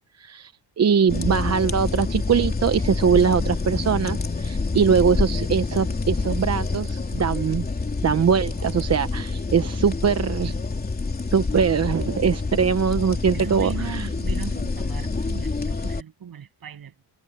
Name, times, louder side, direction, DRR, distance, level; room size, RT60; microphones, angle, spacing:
voice 1, 0.2-0.5 0.8-7.7 8.0-10.6 11.3-14.1, right 7 dB, 35° right, 0.9 m, -22 dB
sound 1, 1.1-16.0, left 3 dB, 20° left, 3.4 m, -27 dB
voice 2, 13.3-17.0, right 8 dB, 55° right, 7.9 m, -37 dB
wide cardioid pair, 160°, 43 cm